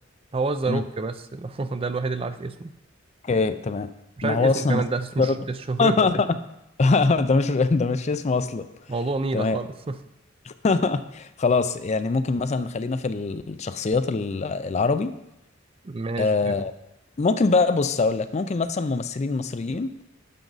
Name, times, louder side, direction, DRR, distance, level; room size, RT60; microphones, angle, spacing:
voice 1, 0.3-2.7 4.2-6.1 8.9-10.0 15.8-16.5, right 3 dB, 30° right, 11 dB, 0.4 m, -28 dB
voice 2, 3.2-3.9 4.2-4.8 5.2-5.3 5.8-6.4 6.8-8.7 9.3-9.6 10.5-15.1 16.2-16.7 17.2-19.9, left 3 dB, 35° left, 12 dB, 0.4 m, -23 dB
10.5 x 6.5 x 4.0 m, 0.86 s
head